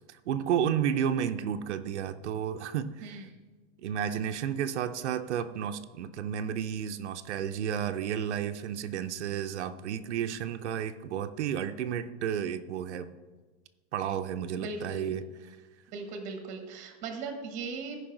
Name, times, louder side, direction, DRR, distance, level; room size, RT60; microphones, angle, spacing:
voice 1, 0.0-3.2 3.8-13.1 13.9-15.6, right 9 dB, 90° right, 8 dB, 0.7 m, -32 dB
voice 2, 14.6-15.0 15.9-18.0, right 4 dB, 20° right, 5 dB, 1.1 m, -38 dB
14.0 x 5.3 x 3.9 m, 1.3 s
supercardioid pair, 175°, 33 cm